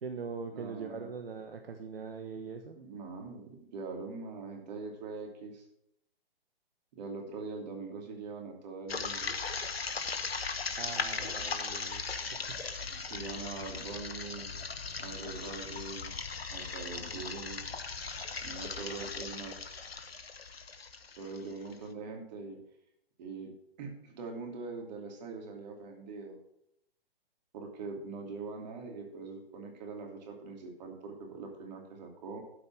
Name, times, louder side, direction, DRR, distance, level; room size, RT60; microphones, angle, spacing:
voice 1, 0.0-2.8 10.8-12.1 12.3-12.6, right 5 dB, 75° right, 6 dB, 1.1 m, -41 dB
voice 2, 0.5-1.1 2.8-5.7 6.9-9.3 12.9-14.5 15.0-16.1 16.5-17.6 18.4-19.6 21.2-22.6 23.2-23.5 23.8-26.4 27.5-32.4, right 4 dB, 45° right, 2 dB, 2.8 m, -42 dB
sound 1, 8.9-21.7, left 4 dB, 85° left, 1.1 m, -38 dB
12.5 x 5.2 x 6.1 m, 0.77 s
figure-of-eight pair, 130°, 30 cm